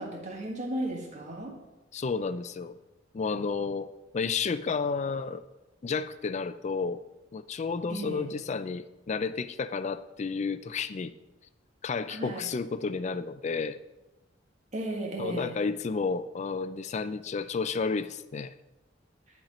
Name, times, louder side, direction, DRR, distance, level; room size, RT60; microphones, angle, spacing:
voice 1, 0.0-1.5 7.9-8.3 12.1-12.5 14.7-15.5, right 1 dB, 40° right, 0 dB, 1.7 m, -35 dB
voice 2, 1.9-2.8 3.1-3.9 4.1-5.4 5.8-7.0 7.3-11.1 11.8-13.8 15.2-18.5, left 4 dB, 35° left, 14 dB, 0.4 m, -31 dB
11.0 x 4.4 x 5.1 m, 1.0 s
head